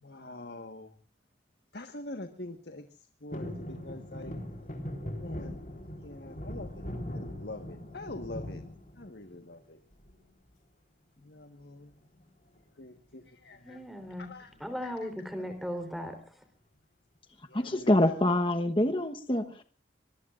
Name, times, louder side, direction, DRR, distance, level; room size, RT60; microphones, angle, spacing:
voice 1, 0.0-0.9 1.7-2.8 3.2-4.3 5.2-5.6 6.0-8.6 9.0-9.8 11.2-11.9 12.8-13.9 14.2-14.5 14.8-15.1 17.5-18.1, left 2 dB, 70° left, 7 dB, 1.4 m, -45 dB
sound 1, 3.3-9.5 9.9-10.5 11.8-12.2 12.5-12.6 12.8-13.1 14.0-14.9 15.4-15.5, equal, 45° left, 3.9 m, -40 dB
voice 2, 13.6-14.3 14.6-16.4, equal, ahead, 7 dB, 3.7 m, -37 dB
voice 3, 17.5-19.6, left 1 dB, 30° left, 6 dB, 1.1 m, -26 dB
24.5 x 22.5 x 2.5 m, 0.37 s
head